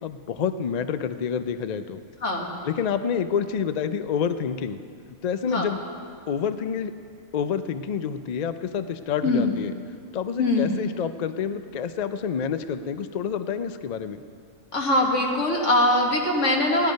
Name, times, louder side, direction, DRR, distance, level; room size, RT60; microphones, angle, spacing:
voice 1, 0.0-2.0 2.6-4.8 5.2-5.8 6.3-6.9 7.3-9.7 10.1-14.2, left 7 dB, 90° left, 10 dB, 0.3 m, -28 dB
voice 2, 2.2-2.5 5.5-5.7 9.2-9.5 10.4-10.7 14.7-16.9, left 1 dB, 60° left, -1 dB, 2.0 m, -22 dB
16.0 x 11.5 x 5.2 m, 2.2 s
omnidirectional pair, 1.4 m